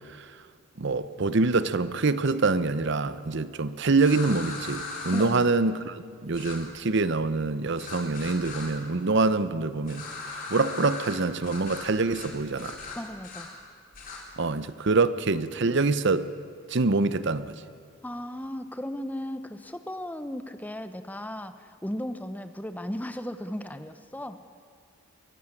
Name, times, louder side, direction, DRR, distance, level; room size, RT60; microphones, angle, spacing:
voice 1, 0.8-10.0 10.3-12.8 14.4-16.3 16.7-17.6, right 3 dB, 55° right, 0.7 m, -25 dB
sound 1, 4.0-5.3 6.3-6.6 7.8-8.7 9.8-11.1 11.4-11.9 12.1-12.3 12.6-13.4 13.9-14.2, left 3 dB, 40° left, 4.4 m, -38 dB
voice 2, 5.1-5.5 12.9-13.5 18.0-24.4, left 1 dB, 5° left, 0.7 m, -36 dB
22.5 x 15.5 x 9.8 m
head